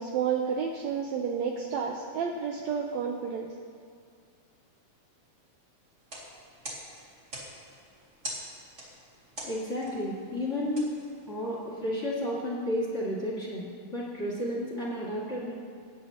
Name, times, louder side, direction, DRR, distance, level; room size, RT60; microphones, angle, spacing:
voice 1, 0.0-3.5, right 6 dB, 80° right, 2 dB, 1.6 m, -31 dB
sound 1, 5.9-11.7, equal, 25° right, 2.4 m, -44 dB
voice 2, 9.4-10.9 11.3-15.5, left 1 dB, 25° left, -5 dB, 1.8 m, -32 dB
21.0 x 9.6 x 2.9 m, 2.2 s
omnidirectional pair, 3.8 m